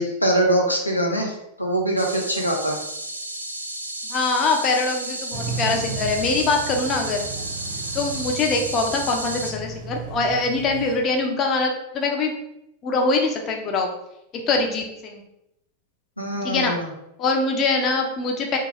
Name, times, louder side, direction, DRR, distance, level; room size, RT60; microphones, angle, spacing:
voice 1, 0.0-2.8 16.2-16.9, right 1 dB, 90° left, 0 dB, 0.4 m, -23 dB
sound 1, 2.0-9.5, right 2 dB, 80° right, 0.3 m, -32 dB
voice 2, 4.1-7.2 7.9-12.3 12.8-13.9 14.5-15.2 16.4-16.7 17.2-18.6, left 3 dB, 30° left, 2 dB, 0.5 m, -23 dB
sound 2, 5.3-11.0, right 3 dB, 50° right, 0.7 m, -34 dB
2.6 x 2.3 x 3.0 m, 0.83 s
figure-of-eight pair, 90°, 0 cm